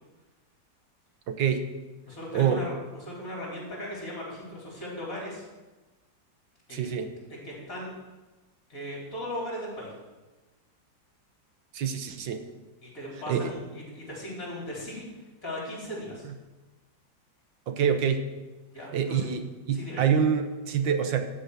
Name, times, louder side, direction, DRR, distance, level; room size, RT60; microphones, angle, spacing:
voice 1, 1.3-1.7 2.3-2.6 6.7-7.1 11.7-12.4 13.3-13.5 17.7-18.2 18.9-21.2, right 7 dB, 75° right, 7 dB, 1.6 m, -26 dB
voice 2, 2.1-5.5 6.7-6.9 7.3-7.9 8.7-9.9 12.8-15.1 15.4-16.3 18.7-19.3 19.7-20.0, left 1 dB, 45° left, -4 dB, 4.6 m, -37 dB
13.5 x 5.5 x 8.3 m, 1.2 s
omnidirectional pair, 2.1 m